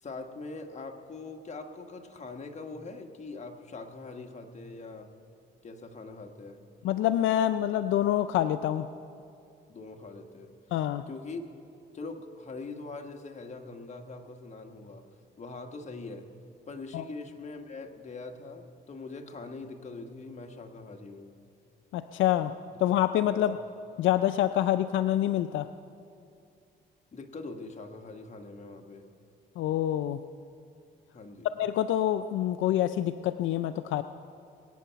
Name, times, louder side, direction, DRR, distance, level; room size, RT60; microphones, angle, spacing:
voice 1, 0.0-5.1 5.6-6.6 9.7-10.5 11.1-11.4 11.9-15.0 15.4-16.3 16.7-21.3 22.7-22.8 23.3-23.5 27.1-29.0 31.1-31.5, left 3 dB, 35° left, 4 dB, 1.4 m, -42 dB
voice 2, 6.8-8.9 10.7-11.0 16.9-17.0 21.9-22.5 22.8-23.6 24.0-25.7 29.6-30.2 31.5-34.0, left 12 dB, 75° left, 11 dB, 0.4 m, -26 dB
21.5 x 9.1 x 5.7 m, 2.5 s
cardioid pair, 90°, 20 cm